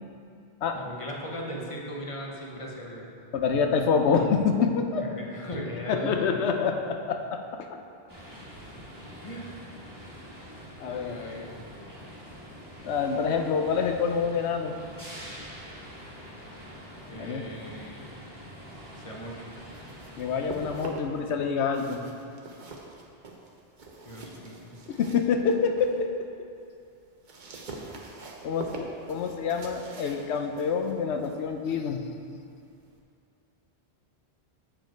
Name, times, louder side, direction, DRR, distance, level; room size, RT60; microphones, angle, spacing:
voice 1, 0.7-3.1 4.9-6.6 9.2-9.5 10.8-11.5 17.1-18.1 18.9-19.5 24.0-24.7, equal, 30° left, -2 dB, 0.9 m, -38 dB
voice 2, 3.3-5.1 5.9-7.7 10.8-11.5 12.8-14.8 17.2-17.5 20.2-22.0 24.9-26.3 28.4-32.0, left 5 dB, 85° left, 5 dB, 0.9 m, -27 dB
sound 1, 8.1-20.8, equal, 20° right, 1.2 m, -45 dB
sound 2, 19.5-21.3 21.6-26.0 26.4-33.0, right 2 dB, 50° right, 0.8 m, -44 dB
7.7 x 5.1 x 4.4 m, 2.4 s
omnidirectional pair, 1.1 m